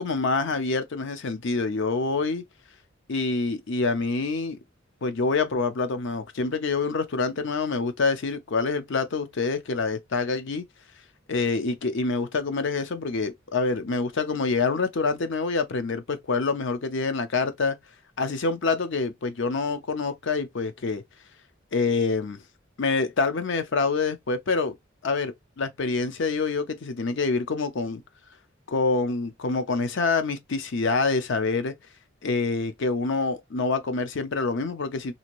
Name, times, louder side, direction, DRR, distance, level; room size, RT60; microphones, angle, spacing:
voice 1, 0.0-2.4 3.1-4.6 5.0-10.6 11.3-17.8 18.2-21.0 21.7-22.4 22.8-24.7 25.0-28.0 28.7-31.7 32.2-35.1, left 4 dB, 65° left, 0.6 m, -26 dB
2.7 x 2.5 x 2.9 m
head